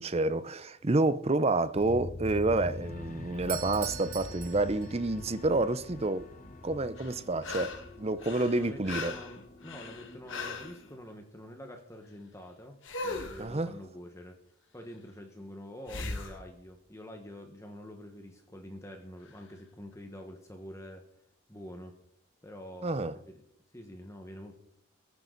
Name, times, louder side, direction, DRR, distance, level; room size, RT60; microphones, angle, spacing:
voice 1, 0.0-6.3 6.6-9.1 13.4-13.7 22.8-23.2, right 2 dB, 30° right, 0.6 m, -29 dB
sound 1, 1.7-11.0, left 2 dB, 40° left, 1.0 m, -44 dB
Doorbell, 3.4-5.3, right 13 dB, 85° right, 1.1 m, -42 dB
sound 2, 7.0-7.9 8.2-10.8 12.8-13.5 15.9-16.4 19.3-19.4, left 3 dB, 60° left, 1.8 m, -38 dB
voice 2, 8.5-14.3 14.7-21.0 21.5-21.9 22.4-23.4 23.7-24.6, left 1 dB, 15° left, 1.4 m, -46 dB
21.0 x 9.5 x 4.0 m
head